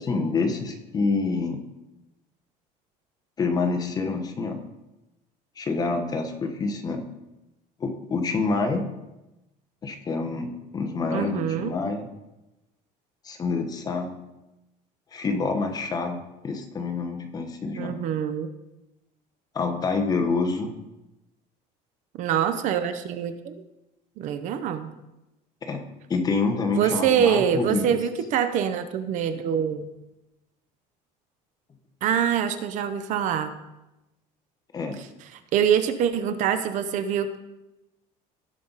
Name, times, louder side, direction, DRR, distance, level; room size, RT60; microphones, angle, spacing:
voice 1, 0.0-1.6 3.4-4.6 5.6-7.0 7.8-8.8 9.8-12.1 13.2-14.2 15.1-17.9 19.5-20.7 25.7-25.8 26.1-28.0 34.7-35.0, left 4 dB, 25° left, 5 dB, 1.1 m, -27 dB
voice 2, 11.1-11.7 17.8-18.5 22.2-23.5 24.2-24.9 26.8-29.9 32.0-33.5 35.5-37.4, right 8 dB, 50° right, 10 dB, 0.7 m, -24 dB
16.5 x 5.6 x 4.0 m, 0.98 s
cardioid pair, 150°, 16 cm